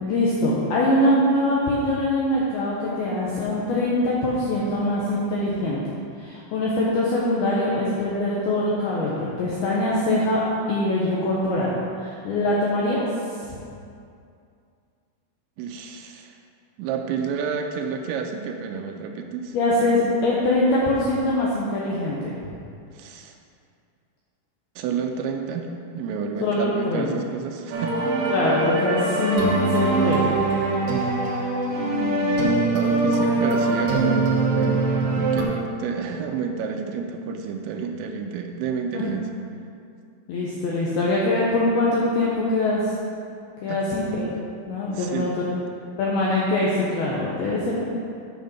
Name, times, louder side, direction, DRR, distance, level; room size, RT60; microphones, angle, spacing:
voice 1, 0.0-5.8 6.2-11.7 12.0-13.0 19.5-22.2 26.4-27.1 28.3-30.3 38.9-39.0 40.3-42.9 43.6-44.3 44.7-45.5 46.0-47.8, left 1 dB, 75° left, -5 dB, 2.3 m, -23 dB
voice 2, 15.6-16.4 16.8-19.6 22.9-23.3 24.8-28.0 31.0-31.1 31.7-34.9 35.2-39.3 43.7-44.0 44.9-45.4, right 5 dB, 85° right, 3 dB, 2.7 m, -30 dB
sound 1, 27.7-35.4, right 3 dB, 65° right, 2.8 m, -22 dB
9.3 x 6.3 x 5.3 m, 2.4 s
omnidirectional pair, 5.6 m